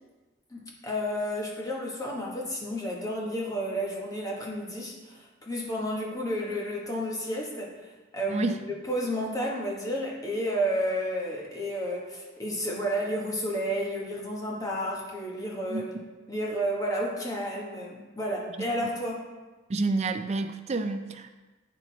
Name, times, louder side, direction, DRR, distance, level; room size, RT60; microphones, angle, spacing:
voice 1, 0.5-7.7 8.1-15.9 16.3-19.3, equal, 20° left, -3 dB, 1.2 m, -31 dB
voice 2, 19.7-21.3, right 3 dB, 35° right, 8 dB, 0.4 m, -29 dB
9.1 x 4.5 x 4.1 m, 1.2 s
head